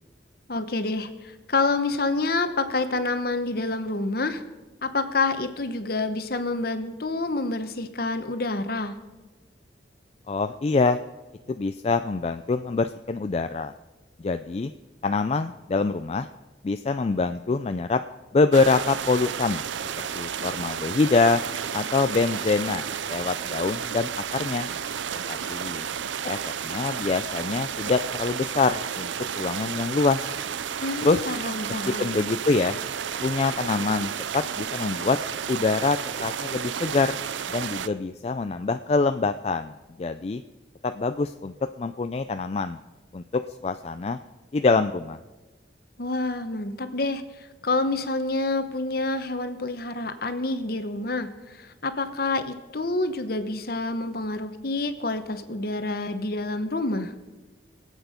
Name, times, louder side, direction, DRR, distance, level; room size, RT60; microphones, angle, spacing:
voice 1, 0.5-4.4 4.8-8.9 30.8-32.1 46.0-57.1, left 3 dB, 55° left, 9 dB, 1.0 m, -28 dB
voice 2, 10.3-11.0 11.5-13.7 14.2-14.7 15.0-16.3 16.6-18.0 18.3-19.6 20.1-21.4 21.7-24.7 25.3-25.8 26.2-26.4 26.6-29.1 29.4-30.4 31.0-31.2 31.7-32.8 33.2-35.2 35.5-37.2 37.5-40.4 40.8-42.8 43.1-43.2 43.6-44.2 44.5-45.2, left 3 dB, 35° left, 8 dB, 0.3 m, -25 dB
sound 1, 18.5-37.9, right 8 dB, 85° right, 0.5 m, -32 dB
23.5 x 8.2 x 5.1 m, 1.2 s
head